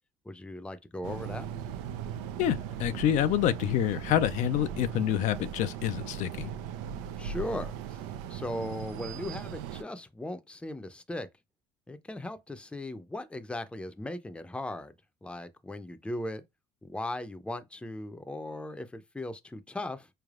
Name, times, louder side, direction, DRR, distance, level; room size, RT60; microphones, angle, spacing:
voice 1, 0.2-1.5 7.2-8.0 8.3-11.3 11.9-14.9 15.2-16.4 16.8-20.1, left 1 dB, 10° left, 0.6 m, -38 dB
sound 1, 1.0-9.8, right 8 dB, 85° right, 0.5 m, -38 dB
voice 2, 2.4-6.5, left 11 dB, 65° left, 0.5 m, -27 dB
4.5 x 3.3 x 2.4 m
supercardioid pair, 90°, 13 cm